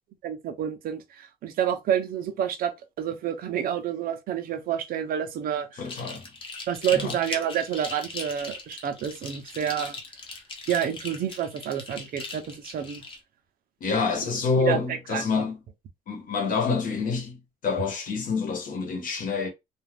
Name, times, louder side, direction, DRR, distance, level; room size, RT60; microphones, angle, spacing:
voice 1, 0.2-2.7 3.0-5.8 6.7-10.0 10.7-13.0 14.6-15.4, right 9 dB, 60° right, 0.6 m, -29 dB
voice 2, 5.7-6.3 6.9-7.2 13.8-15.6 16.1-19.5, left 4 dB, 55° left, 1.0 m, -27 dB
sound 1, 5.8-13.2, left 3 dB, 30° left, 0.7 m, -39 dB
2.4 x 2.4 x 3.3 m
cardioid pair, 145°, 17 cm